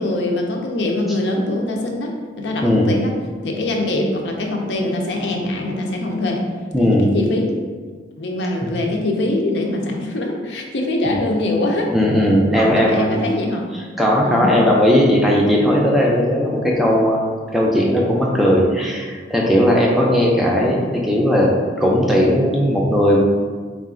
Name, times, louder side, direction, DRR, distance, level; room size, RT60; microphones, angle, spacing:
voice 1, 0.0-3.1 3.4-6.5 6.8-7.6 7.9-11.9 12.5-13.7 14.2-14.6, left 1 dB, 85° left, 1 dB, 0.6 m, -23 dB
voice 2, 6.7-7.1 8.6-8.7 11.1-11.2 11.9-13.1 13.7-17.3 17.5-21.5 21.8-23.2, equal, ahead, -3 dB, 0.4 m, -17 dB
4.0 x 2.4 x 3.7 m, 1.5 s
head